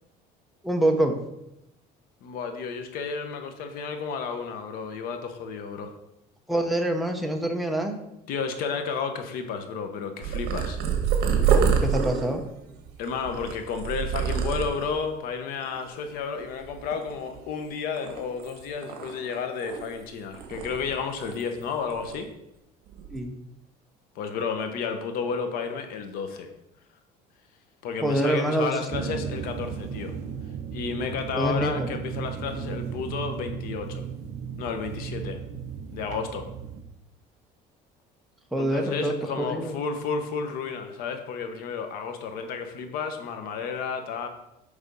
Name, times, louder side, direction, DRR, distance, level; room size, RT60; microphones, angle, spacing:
voice 1, 0.6-1.2 6.5-8.0 11.5-12.4 23.1-23.3 28.0-28.9 31.3-31.9 38.5-39.7, right 1 dB, ahead, 2 dB, 0.6 m, -26 dB
voice 2, 2.2-5.9 8.3-10.8 13.0-22.3 24.1-26.5 27.8-30.1 30.7-34.0 34.6-35.4 35.9-36.5 38.6-44.3, left 5 dB, 60° left, 6 dB, 1.0 m, -32 dB
Purr, 10.2-15.0 15.6-16.1 16.3-17.6 18.0-20.0 20.3-21.6 21.9-22.2 22.9-23.2, right 7 dB, 70° right, 1.2 m, -27 dB
sound 1, 28.9-36.8, right 7 dB, 45° right, 0.6 m, -35 dB
8.2 x 3.6 x 5.3 m, 0.86 s
cardioid pair, 165°, 17 cm